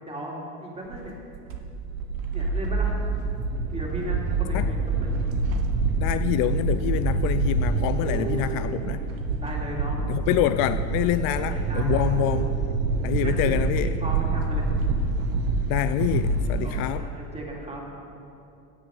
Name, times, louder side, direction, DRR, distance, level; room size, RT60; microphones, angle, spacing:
voice 1, 0.0-1.1 2.3-3.0 3.7-5.2 9.4-10.0 11.2-12.1 13.2-14.8 16.6-17.8, right 1 dB, 15° right, -2 dB, 2.9 m, -36 dB
sound 1, 0.9-16.9, right 3 dB, 80° right, 1.3 m, -26 dB
voice 2, 6.0-9.0 10.1-12.6 13.0-14.0 15.7-17.1, left 14 dB, 60° left, 12 dB, 0.5 m, -26 dB
16.0 x 6.8 x 5.5 m, 2.6 s
hypercardioid pair, 90°, 40 cm